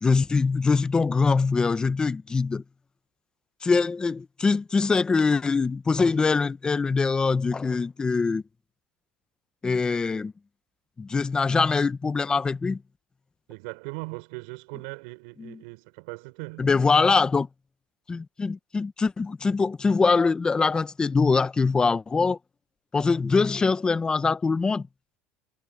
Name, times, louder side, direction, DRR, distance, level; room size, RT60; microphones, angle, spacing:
voice 1, 0.0-2.6 3.6-8.4 9.6-10.3 11.0-12.8 15.4-15.6 16.6-17.5 18.1-22.4 22.9-24.9, left 4 dB, 20° left, 1.0 m, -23 dB
voice 2, 13.5-16.7, right 27 dB, 85° right, 4.4 m, -39 dB
cardioid pair, 125°, 4 cm